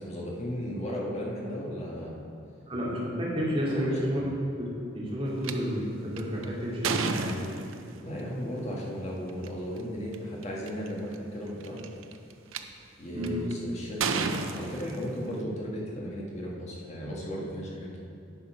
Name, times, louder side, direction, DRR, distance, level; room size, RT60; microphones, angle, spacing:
voice 1, 0.0-2.2 3.7-4.3 8.0-11.9 13.0-14.3 14.6-18.0, equal, 35° left, -3 dB, 1.6 m, -35 dB
voice 2, 2.7-4.2 4.6-4.7 4.9-7.4 13.1-13.4, equal, 25° right, -7 dB, 2.3 m, -30 dB
sound 1, 5.4-5.5 6.2-8.0 9.3-9.5 10.1-10.2 10.4-10.9 11.6-12.6 13.2-13.5 14.0-15.4, right 5 dB, 80° right, 0.6 m, -31 dB
10.5 x 5.7 x 5.0 m, 2.7 s
head